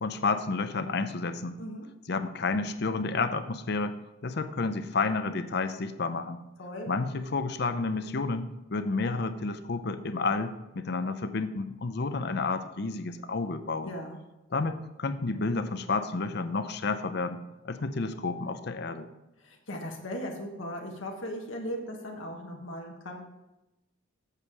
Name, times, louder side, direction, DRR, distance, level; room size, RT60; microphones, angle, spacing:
voice 1, 0.0-1.6 2.1-4.0 4.2-6.4 6.9-13.9 14.5-17.4 17.6-19.1, left 3 dB, 55° left, 10 dB, 0.6 m, -30 dB
voice 2, 6.6-6.9 13.8-14.2 19.4-23.2, equal, 75° left, 1 dB, 1.3 m, -38 dB
8.2 x 7.2 x 4.8 m, 0.96 s
head